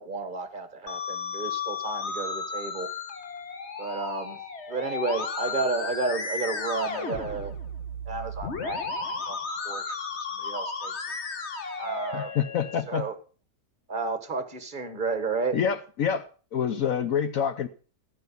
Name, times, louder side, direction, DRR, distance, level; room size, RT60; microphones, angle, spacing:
voice 1, 0.0-2.9 3.8-4.4 4.7-7.5 8.0-9.4 9.6-10.0 10.3-10.9 11.8-12.4 12.9-13.1 13.9-15.6, right 4 dB, 30° right, 10 dB, 1.5 m, -32 dB
Musical instrument, 0.9-12.8, left 4 dB, 45° left, 1.6 m, -34 dB
voice 2, 12.1-13.1 15.5-16.3 16.5-17.7, left 8 dB, 60° left, 11 dB, 1.1 m, -27 dB
13.5 x 9.3 x 5.5 m, 0.38 s
omnidirectional pair, 1.8 m